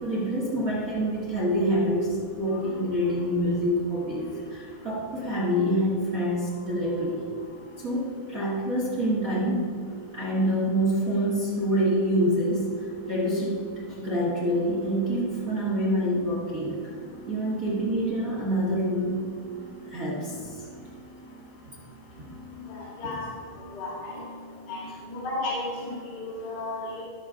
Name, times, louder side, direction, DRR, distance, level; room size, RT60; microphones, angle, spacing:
voice 1, 0.0-4.2 4.5-7.2 7.8-9.8 10.1-13.7 14.0-16.8 17.3-19.2 19.9-20.4, equal, 35° right, -6 dB, 1.5 m, -26 dB
voice 2, 22.7-23.2 23.7-24.2 24.7-24.8 25.1-25.6 26.2-27.0, left 2 dB, 70° left, -6 dB, 4.1 m, -33 dB
18.5 x 6.8 x 3.8 m, 2.3 s
omnidirectional pair, 4.4 m